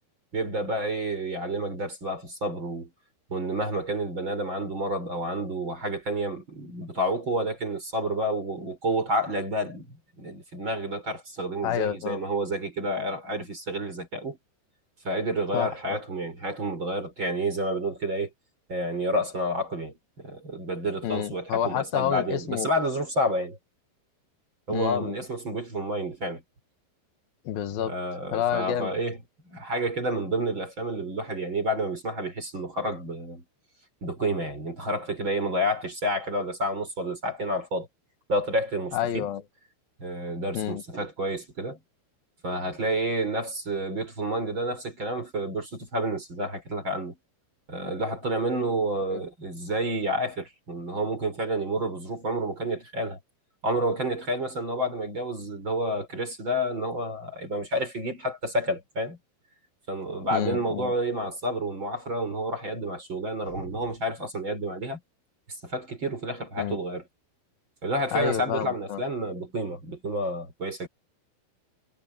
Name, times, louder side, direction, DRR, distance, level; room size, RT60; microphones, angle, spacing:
voice 1, 0.3-2.9 3.3-14.4 15.0-18.3 18.7-23.6 24.7-26.4 27.8-33.4 34.0-37.9 38.3-39.3 40.0-41.8 42.4-47.2 47.7-53.2 53.6-59.2 59.9-65.0 65.6-67.1 67.8-70.9, right 1 dB, 25° right, 5.5 m, -29 dB
voice 2, 11.6-12.2 15.5-16.0 21.0-22.7 24.7-25.2 27.5-27.9 28.3-28.9 38.9-39.4 40.5-40.8 49.1-49.2 60.3-60.9 66.6-66.8 68.1-69.0, left 10 dB, 65° left, 2.6 m, -29 dB
omnidirectional pair, 5.4 m